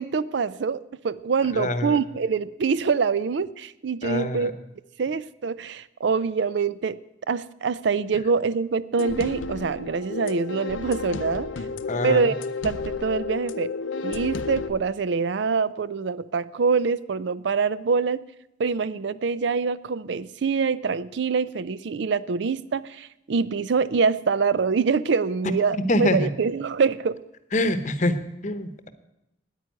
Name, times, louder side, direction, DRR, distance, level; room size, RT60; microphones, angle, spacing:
voice 1, 0.0-4.5 5.0-7.0 7.3-11.5 12.0-12.3 12.6-13.7 14.0-18.2 18.6-27.2, right 5 dB, 60° right, 17 dB, 0.4 m, -25 dB
voice 2, 1.5-2.0 4.0-4.5 11.9-12.2 25.9-26.3 27.5-28.9, left 1 dB, 40° left, 11 dB, 0.9 m, -25 dB
sound 1, 9.0-14.7, left 4 dB, 80° left, 0.7 m, -32 dB
9.8 x 9.2 x 9.2 m, 0.89 s
head